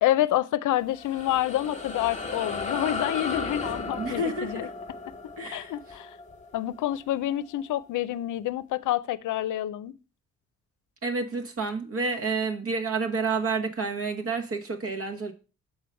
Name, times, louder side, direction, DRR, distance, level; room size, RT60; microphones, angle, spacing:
voice 1, 0.0-4.7 5.4-6.2 6.5-10.0, left 13 dB, 75° left, 0.6 m, -28 dB
sound 1, 0.8-7.6, left 3 dB, 20° left, 1.1 m, -35 dB
voice 2, 4.0-4.7 5.4-5.7 11.0-15.3, right 4 dB, 45° right, 1.2 m, -29 dB
6.3 x 4.9 x 5.3 m
cardioid pair, 70°, 31 cm